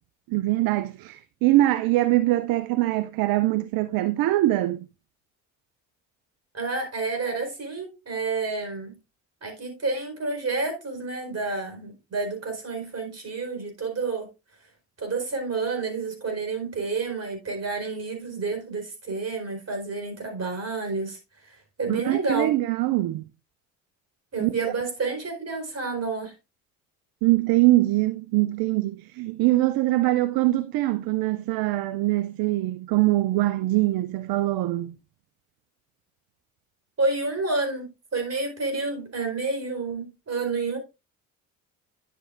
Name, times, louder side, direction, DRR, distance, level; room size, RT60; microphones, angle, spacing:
voice 1, 0.3-4.9 21.9-23.3 24.4-24.6 27.2-34.9, right 17 dB, 60° right, 0.6 m, -23 dB
voice 2, 6.5-9.0 9.4-14.3 15.0-21.2 21.8-22.5 24.3-26.3 37.0-40.8, right 3 dB, 40° right, 4.4 m, -29 dB
10.5 x 7.5 x 2.5 m
hypercardioid pair, 50°, 41 cm